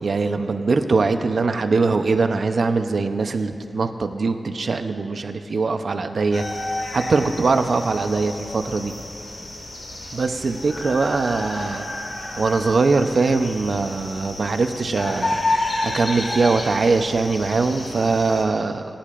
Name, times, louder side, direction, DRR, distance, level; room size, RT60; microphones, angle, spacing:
voice 1, 0.0-6.4 6.9-8.9 10.1-11.9 12.4-15.4 15.8-19.0, right 4 dB, 65° right, 7 dB, 0.7 m, -22 dB
sound 1, 6.3-18.4, left 2 dB, 65° left, 3.0 m, -30 dB
30.0 x 10.5 x 2.5 m, 2.9 s
wide cardioid pair, 115°, 0 cm